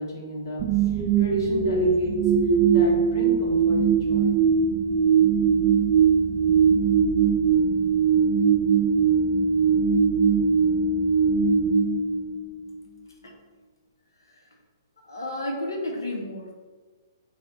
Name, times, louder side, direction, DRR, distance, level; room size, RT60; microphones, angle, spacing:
voice 1, 0.0-4.3 4.9-5.4, left 1 dB, 65° left, -4 dB, 1.3 m, -35 dB
sound 1, 0.6-12.7, right 6 dB, 30° right, 0.3 m, -21 dB
voice 2, 15.0-16.5, left 1 dB, 90° left, 1 dB, 0.9 m, -32 dB
3.4 x 2.3 x 4.4 m, 1.3 s
hypercardioid pair, 140°, 2 cm